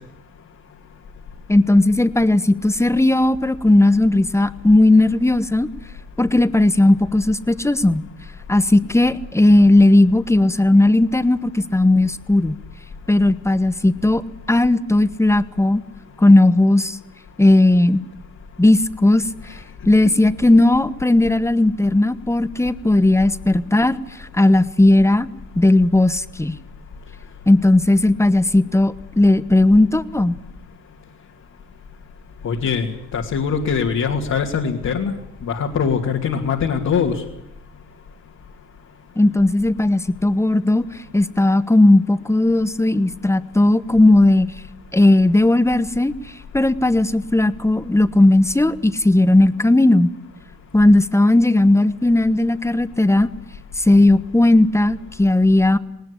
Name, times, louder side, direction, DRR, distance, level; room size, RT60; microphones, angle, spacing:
voice 1, 1.5-5.7 6.2-8.0 8.5-12.6 13.1-14.2 14.5-15.8 16.2-17.0 17.4-18.0 18.6-19.2 19.8-25.3 25.5-26.6 27.5-30.3 39.2-40.8 41.1-44.5 44.9-46.1 46.5-50.1 50.7-53.3 53.8-55.8, left 2 dB, 10° left, 13 dB, 1.2 m, -16 dB
voice 2, 32.4-32.9 33.1-37.2, left 6 dB, 65° left, 0 dB, 2.7 m, -22 dB
20.0 x 18.5 x 10.0 m, 0.83 s
cardioid pair, 90°, 30 cm